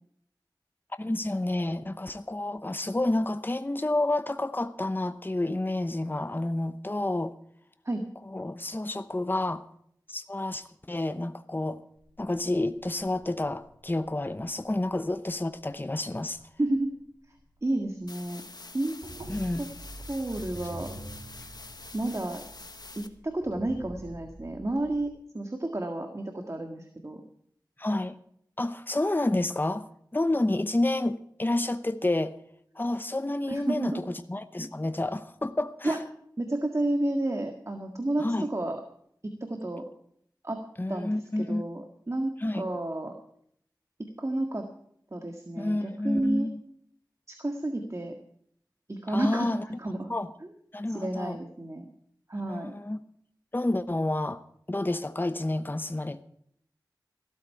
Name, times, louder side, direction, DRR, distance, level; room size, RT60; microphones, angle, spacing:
voice 1, 1.0-7.3 8.3-9.6 10.1-11.8 12.2-16.4 19.3-19.6 27.8-28.2 28.6-32.4 32.8-36.0 38.2-38.5 40.8-41.6 42.4-42.7 45.6-46.6 49.1-49.7 50.1-50.3 50.7-51.4 52.5-53.0 53.5-54.4 54.7-56.2, left 2 dB, 25° left, 10 dB, 0.8 m, -29 dB
sound 1, 12.0-18.3 18.6-25.1, right 1 dB, 85° right, 2.7 m, -46 dB
voice 2, 16.6-16.9 17.6-18.4 18.7-19.0 19.6-19.7 20.1-20.9 21.9-22.4 23.0-27.2 33.5-34.0 35.8-36.0 36.4-38.8 39.2-39.8 40.4-40.6 40.9-43.2 44.0-44.6 45.1-46.5 47.3-48.1 48.9-49.5 49.8-50.1 50.9-51.9 52.3-52.7, right 1 dB, 40° right, 4 dB, 1.8 m, -31 dB
sound 2, 18.1-23.1, left 3 dB, 60° left, 1.3 m, -46 dB
15.5 x 13.0 x 4.8 m, 0.66 s
wide cardioid pair, 55°, 8 cm